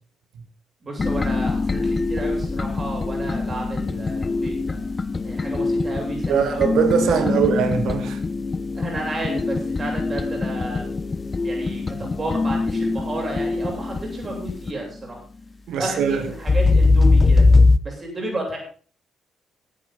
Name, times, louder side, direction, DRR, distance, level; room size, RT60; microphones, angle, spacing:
voice 1, 0.8-4.8 5.2-6.7 7.1-7.4 8.7-10.8 11.4-15.2 15.8-17.5 17.8-18.6, right 1 dB, 35° right, 7.8 m, -32 dB
sound 1, 1.0-14.7 16.5-17.8, left 3 dB, 30° left, 0.9 m, -22 dB
voice 2, 6.3-8.2 15.7-16.3, right 7 dB, 65° right, 1.9 m, -21 dB
18.0 x 9.6 x 4.1 m
figure-of-eight pair, 40°, 0 cm